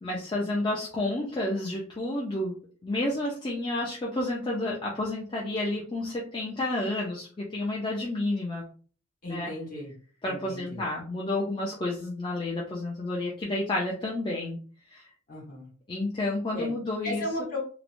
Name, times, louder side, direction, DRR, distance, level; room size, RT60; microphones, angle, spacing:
voice 1, 0.0-2.6 2.8-8.7 9.3-9.5 10.2-14.6 14.9-15.1 15.9-17.2, left 2 dB, 25° left, -4 dB, 0.4 m, -30 dB
voice 2, 9.2-9.9 10.3-10.8 15.3-15.7 16.5-16.7 17.0-17.6, left 1 dB, 45° left, -3 dB, 1.2 m, -35 dB
3.1 x 2.1 x 2.5 m, 0.41 s
head